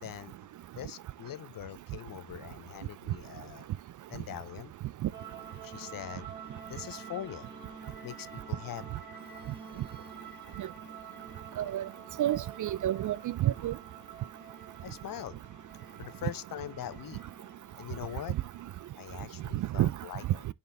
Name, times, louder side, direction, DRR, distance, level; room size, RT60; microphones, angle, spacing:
voice 1, 0.0-3.7 4.1-4.7 5.6-6.3 6.7-7.5 8.0-8.8 14.8-15.4 16.0-17.2 17.8-18.4 19.0-20.5, left 11 dB, 45° left, 0.7 m, -42 dB
sound 1, 5.1-18.9, right 6 dB, 20° right, 3.1 m, -48 dB
voice 2, 11.6-11.9 12.2-13.7 19.8-19.9, right 13 dB, 45° right, 0.4 m, -29 dB
10.5 x 4.2 x 2.6 m
supercardioid pair, 60°, 48 cm